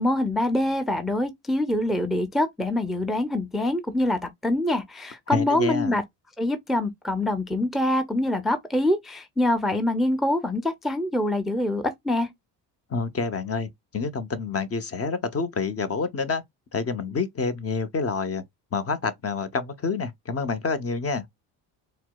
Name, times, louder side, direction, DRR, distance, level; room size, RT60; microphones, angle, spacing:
voice 1, 0.0-6.0 6.4-12.3, left 1 dB, ahead, 0.5 m, -25 dB
voice 2, 5.3-5.9 12.9-16.4 16.7-18.4 18.7-21.3, left 4 dB, 35° left, 0.7 m, -28 dB
4.3 x 2.0 x 2.2 m
supercardioid pair, 70°, 42 cm